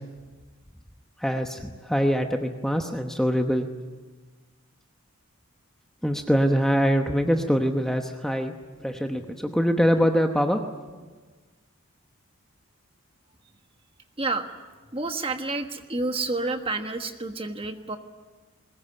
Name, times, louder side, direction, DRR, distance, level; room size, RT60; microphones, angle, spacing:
voice 1, 1.2-3.7 6.0-8.5 8.8-10.6, equal, ahead, 4 dB, 0.9 m, -23 dB
voice 2, 14.9-18.0, right 3 dB, 25° right, 6 dB, 1.3 m, -29 dB
22.0 x 20.0 x 9.7 m, 1.4 s
head